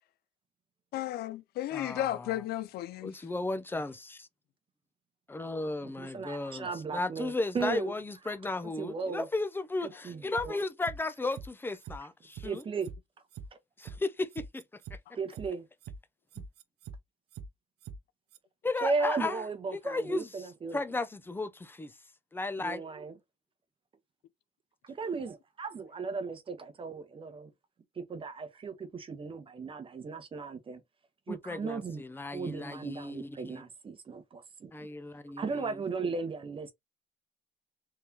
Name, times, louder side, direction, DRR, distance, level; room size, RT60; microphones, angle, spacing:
voice 1, 0.9-3.1, left 13 dB, 70° left, 0.5 m, -34 dB
voice 2, 1.7-2.3 3.0-4.3 5.3-12.6 13.8-14.6 18.6-19.5 19.7-20.3 20.7-21.9 22.3-22.8 31.3-33.6 34.7-35.7, left 2 dB, 10° left, 0.5 m, -35 dB
voice 3, 5.8-7.9 8.3-8.4 8.6-9.3 9.8-10.6 12.4-12.9 15.1-15.7 18.8-20.8 22.6-23.1 24.8-27.5 28.0-30.8 31.3-32.0 32.3-34.9 35.4-36.7, right 4 dB, 30° right, 0.9 m, -36 dB
sound 1, 10.4-11.0 11.3-11.5 11.8-12.0 12.3-13.0 13.3-13.5 13.8-14.0 14.3-15.0 15.3-15.5 15.8-16.0 16.3-17.0 17.3-17.5 17.8-18.0 18.3-18.4, right 6 dB, 80° right, 0.6 m, -43 dB
3.5 x 3.3 x 2.8 m
cardioid pair, 110°, 17 cm